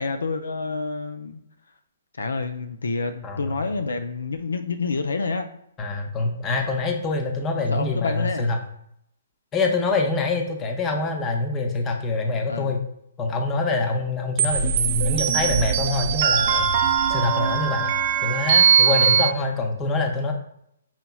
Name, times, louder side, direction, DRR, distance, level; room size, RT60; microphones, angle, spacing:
voice 1, 0.0-1.4 2.2-5.5 7.7-8.5 12.5-12.8, left 4 dB, 80° left, 9 dB, 0.3 m, -28 dB
voice 2, 3.2-3.6 5.8-8.6 9.5-12.8 13.2-16.7 17.1-17.9 18.2-20.3, left 3 dB, 20° left, 3 dB, 0.6 m, -25 dB
sound 1, 14.4-19.3, right 8 dB, 45° right, 0.4 m, -20 dB
5.6 x 2.9 x 2.3 m, 0.74 s
hypercardioid pair, 135°, 0 cm